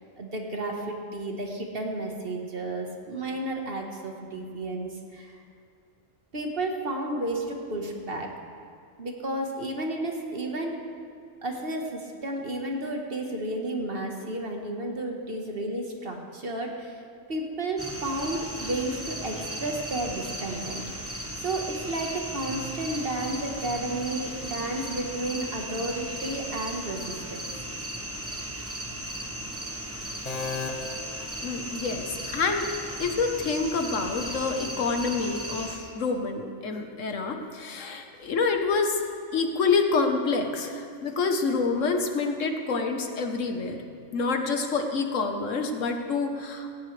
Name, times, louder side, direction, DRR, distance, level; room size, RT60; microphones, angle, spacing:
voice 1, 0.2-5.4 6.3-8.3 9.0-10.8 11.4-17.0 17.3-27.4, right 1 dB, 50° right, 1 dB, 1.6 m, -32 dB
sound 1, 17.8-35.8, right 1 dB, 10° right, 1.2 m, -36 dB
sound 2, 30.3-32.2, left 4 dB, 35° left, 0.8 m, -36 dB
voice 2, 31.4-32.7 33.0-39.0 39.3-43.8 44.1-46.7, left 4 dB, 75° left, 5 dB, 1.5 m, -27 dB
17.0 x 16.5 x 3.3 m, 2.3 s
omnidirectional pair, 1.3 m